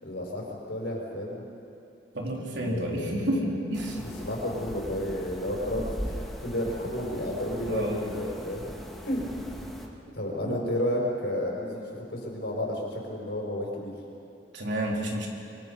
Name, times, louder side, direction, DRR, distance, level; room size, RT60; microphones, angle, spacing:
voice 1, 0.0-1.5 2.5-3.5 3.9-8.7 9.0-9.3 10.1-11.8 12.1-13.9, left 1 dB, 70° left, -1 dB, 5.3 m, -32 dB
voice 2, 2.1-4.0 7.6-8.0 10.4-10.6 14.5-15.3, right 1 dB, 75° right, -1 dB, 4.0 m, -30 dB
sound 1, 3.7-9.9, equal, ahead, 2.1 m, -39 dB
26.5 x 23.0 x 5.5 m, 2.6 s
head